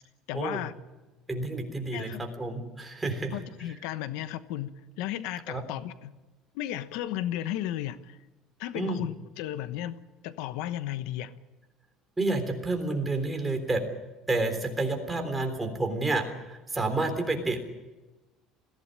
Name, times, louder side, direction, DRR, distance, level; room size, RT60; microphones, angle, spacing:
voice 1, 0.3-0.7 1.9-2.3 3.3-6.1 6.5-8.2 8.6-10.0 10.2-11.3, left 12 dB, 80° left, 12 dB, 1.1 m, -34 dB
voice 2, 1.3-3.3 5.5-5.6 8.7-9.0 12.2-13.8 14.3-17.7, right 2 dB, 10° right, 4 dB, 3.7 m, -29 dB
21.0 x 16.0 x 9.9 m, 1.1 s
cardioid pair, 135°, 0 cm